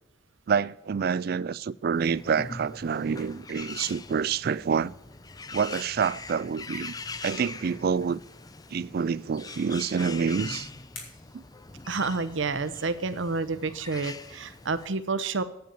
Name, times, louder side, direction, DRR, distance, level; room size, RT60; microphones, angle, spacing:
voice 1, 0.5-4.9 5.5-6.9 7.2-8.2 8.7-10.7 11.3-11.4, right 6 dB, 50° right, 0.3 m, -27 dB
Bird, 1.9-14.9, left 3 dB, 20° left, 0.5 m, -42 dB
sound 1, 9.9-12.6, left 4 dB, 85° left, 4.0 m, -51 dB
voice 2, 11.9-15.4, right 4 dB, 75° right, 0.8 m, -29 dB
10.5 x 8.7 x 7.0 m
head